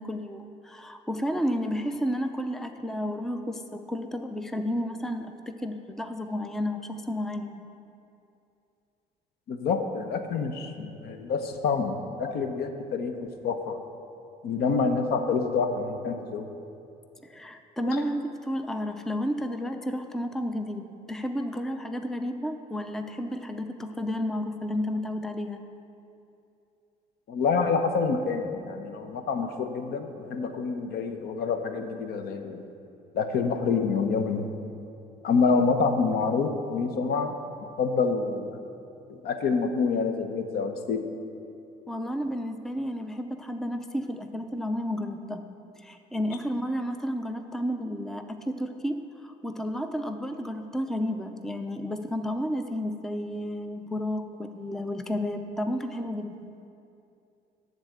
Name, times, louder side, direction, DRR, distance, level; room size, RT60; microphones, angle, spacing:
voice 1, 0.0-5.3 5.6-7.6 17.2-25.6 41.9-45.4 45.8-56.4, equal, ahead, 7 dB, 0.5 m, -32 dB
voice 2, 9.5-13.2 13.4-13.8 14.4-16.5 17.8-18.0 27.3-32.6 33.1-34.5 35.2-37.4 37.8-38.6 39.2-41.0, left 5 dB, 70° left, 7 dB, 0.9 m, -27 dB
12.0 x 4.1 x 7.9 m, 2.6 s
cardioid pair, 110°, 17 cm